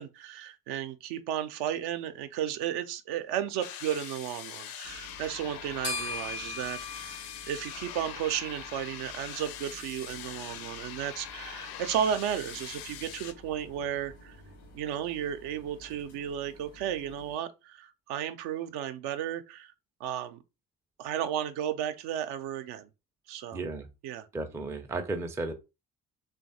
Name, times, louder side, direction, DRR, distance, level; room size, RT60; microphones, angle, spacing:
voice 1, 0.0-7.2 7.5-14.4 14.7-19.7 20.0-20.4 21.0-22.9 23.3-23.6 24.0-24.3, right 10 dB, 60° right, 0.5 m, -34 dB
sound 1, 3.6-13.3, left 10 dB, 50° left, 0.5 m, -43 dB
sound 2, 4.8-17.4, left 3 dB, 80° left, 0.9 m, -45 dB
voice 2, 23.5-23.9 24.3-25.5, right 2 dB, 5° right, 0.4 m, -34 dB
3.1 x 2.2 x 2.7 m
figure-of-eight pair, 45°, 46 cm